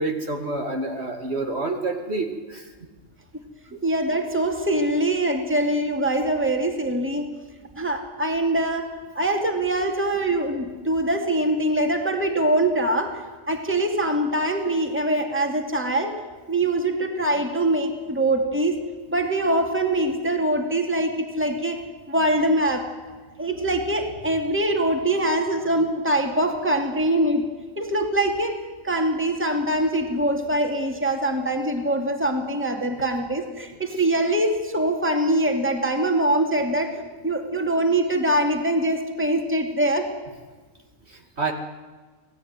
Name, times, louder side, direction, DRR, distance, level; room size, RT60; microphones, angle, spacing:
voice 1, 0.0-2.7 3.7-3.8 41.1-41.5, right 2 dB, 50° right, 3 dB, 2.4 m, -28 dB
voice 2, 3.8-7.3 7.8-8.9 9.1-13.2 13.5-16.1 16.5-18.7 19.1-21.8 22.1-22.8 23.4-27.4 27.8-28.6 28.8-40.1, right 1 dB, 10° right, 3 dB, 2.5 m, -23 dB
26.5 x 17.5 x 9.6 m, 1.4 s
omnidirectional pair, 1.4 m